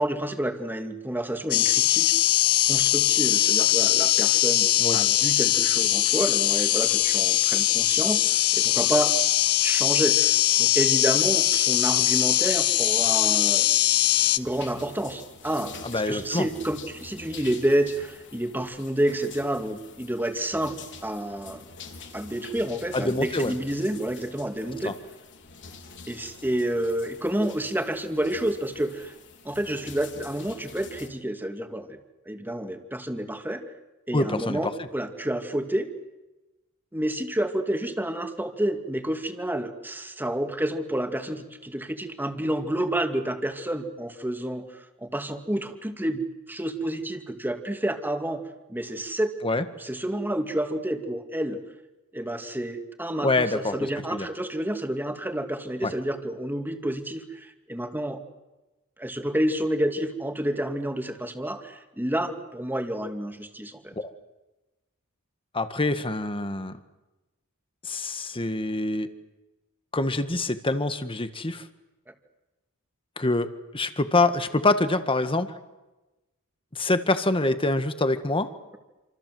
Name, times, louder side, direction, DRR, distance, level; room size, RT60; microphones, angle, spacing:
voice 1, 0.0-2.1 2.7-9.1 9.6-14.0 14.4-20.7 21.0-21.7 22.1-24.9 26.1-29.1 29.4-32.0 32.3-33.6 34.1-35.9 36.9-48.4 48.7-49.3 49.8-51.6 52.1-58.2 59.0-63.9 72.1-72.2, right 1 dB, 10° right, 6 dB, 2.5 m, -29 dB
sound 1, 1.5-14.4, left 14 dB, 90° left, 1.1 m, -21 dB
sound 2, 13.6-31.1, left 5 dB, 55° left, 3.7 m, -46 dB
voice 2, 15.8-16.5 22.9-23.5 24.8-24.9 34.1-34.6 49.4-49.6 53.2-53.8 54.1-54.3 55.8-55.9 64.0-64.1 65.5-66.8 67.8-69.1 69.9-71.6 73.2-73.5 73.7-75.5 76.7-78.5, left 2 dB, 25° left, 10 dB, 1.7 m, -25 dB
28.0 x 27.0 x 7.8 m, 1.0 s
head